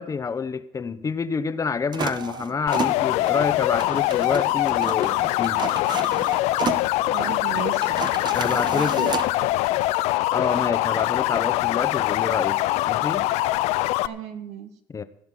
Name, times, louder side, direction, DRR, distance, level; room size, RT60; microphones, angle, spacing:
voice 1, 0.0-5.6 8.3-9.1 10.3-13.3 14.9-15.0, left 5 dB, 30° left, 12 dB, 1.0 m, -28 dB
sound 1, 1.9-9.3, right 6 dB, 40° right, 1.1 m, -33 dB
sound 2, 2.7-14.1, left 17 dB, 75° left, 0.5 m, -23 dB
voice 2, 7.1-8.0 8.7-9.5 14.0-14.7, right 8 dB, 80° right, 8 dB, 1.7 m, -34 dB
16.0 x 5.7 x 9.1 m, 0.72 s
supercardioid pair, 95°, 11 cm